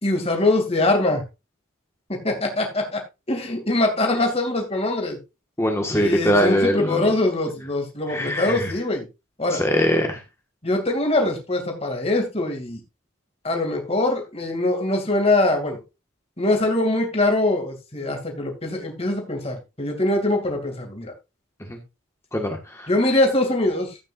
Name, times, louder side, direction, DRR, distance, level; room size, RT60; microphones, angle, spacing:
voice 1, 0.0-1.2 2.2-3.0 3.3-5.2 5.9-9.0 9.4-9.6 10.6-12.8 13.4-15.8 16.4-21.1 22.9-23.9, left 2 dB, 30° left, 2 dB, 2.6 m, -23 dB
voice 2, 5.6-7.0 8.1-8.7 9.5-10.2 21.7-21.8 22.3-22.9, equal, 15° left, 3 dB, 1.6 m, -22 dB
13.5 x 9.0 x 2.6 m, 0.26 s
head